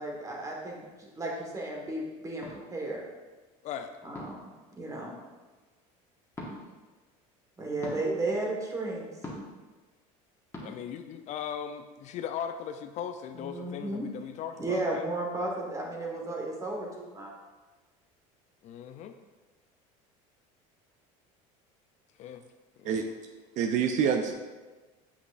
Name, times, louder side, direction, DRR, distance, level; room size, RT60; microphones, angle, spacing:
voice 1, 0.0-3.0 4.0-4.4 4.8-5.1 7.6-9.1 13.3-14.1 14.6-17.3, right 2 dB, 20° right, -1 dB, 1.4 m, -34 dB
sound 1, 2.4-2.6 4.1-4.5 6.3-6.5 7.8-8.0 9.2-9.6 10.5-10.7, left 1 dB, 15° left, 1.4 m, -40 dB
voice 2, 10.6-15.1 18.6-19.2 22.2-22.4 22.8-23.1, left 8 dB, 45° left, 8 dB, 0.4 m, -38 dB
voice 3, 23.6-24.3, right 7 dB, 50° right, 5 dB, 0.5 m, -26 dB
8.2 x 5.4 x 2.5 m, 1.3 s
supercardioid pair, 120°, 17 cm